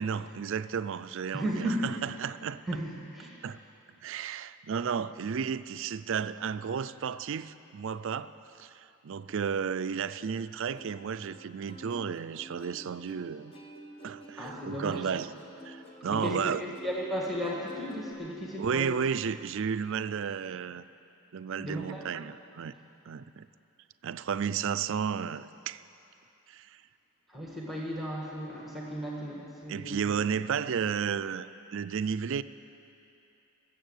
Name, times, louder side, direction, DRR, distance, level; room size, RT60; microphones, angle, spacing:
voice 1, 0.0-2.6 3.4-3.6 4.0-8.3 8.6-13.5 14.0-15.3 15.6-16.6 18.6-20.8 21.3-22.7 23.1-23.5 24.0-25.8 26.5-26.7 29.7-32.4, right 7 dB, 60° right, 14 dB, 0.4 m, -33 dB
voice 2, 1.3-1.9 2.7-3.4 14.3-15.2 16.1-18.9 21.6-22.1 27.3-30.1, equal, ahead, -4 dB, 1.6 m, -35 dB
Plucked string instrument, 10.7-18.1, equal, 25° left, 1.2 m, -49 dB
20.5 x 7.5 x 8.0 m, 2.8 s
head